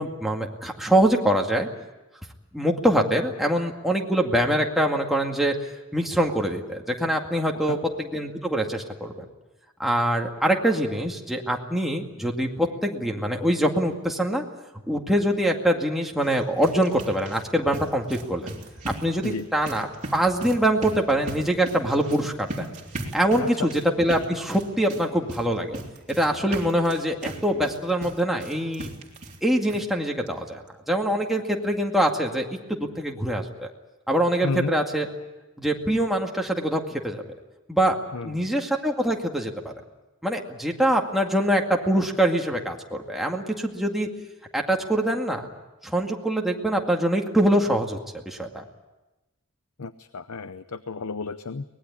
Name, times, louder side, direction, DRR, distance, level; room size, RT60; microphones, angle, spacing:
voice 1, 0.0-1.7 2.5-5.5 5.9-9.2 9.8-14.4 14.9-18.5 18.9-19.9 20.1-22.7 23.1-25.8 26.1-28.9 29.4-33.7 34.1-35.1 35.6-37.2 37.7-37.9 38.2-39.7 40.2-44.1 44.5-45.5 45.8-48.0 48.3-48.6, right 1 dB, ahead, 0 dB, 2.1 m, -24 dB
sound 1, 16.2-29.4 29.7-29.8 30.3-30.4 30.7-30.8, right 2 dB, 35° right, 3.4 m, -38 dB
voice 2, 23.4-23.7 34.4-34.7 38.1-38.3 49.8-51.6, left 4 dB, 75° left, 12 dB, 0.7 m, -32 dB
24.0 x 19.5 x 8.6 m, 1.1 s
head